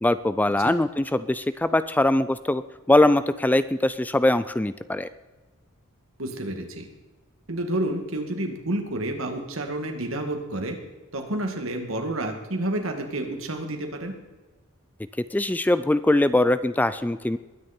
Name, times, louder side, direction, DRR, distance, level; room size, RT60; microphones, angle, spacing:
voice 1, 0.0-2.6 2.9-5.1 15.3-17.4, left 1 dB, 10° left, 13 dB, 0.3 m, -22 dB
voice 2, 6.2-6.9 7.5-10.8 11.1-14.1, right 1 dB, 70° right, 4 dB, 2.2 m, -29 dB
21.5 x 9.6 x 4.4 m, 1.2 s
head